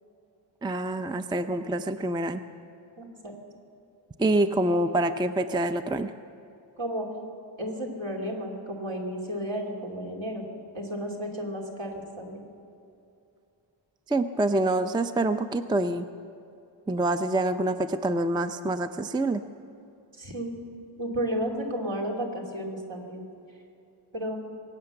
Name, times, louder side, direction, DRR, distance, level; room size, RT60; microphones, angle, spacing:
voice 1, 0.6-2.4 4.2-6.1 14.1-16.1 16.9-19.4, right 2 dB, 10° right, 9 dB, 0.4 m, -26 dB
voice 2, 3.0-3.3 6.8-7.1 7.6-10.5 10.7-12.4 20.2-20.6 21.0-23.2 24.1-24.4, equal, 70° right, -1 dB, 2.8 m, -32 dB
23.0 x 8.7 x 6.8 m, 2.7 s
wide cardioid pair, 90°, 48 cm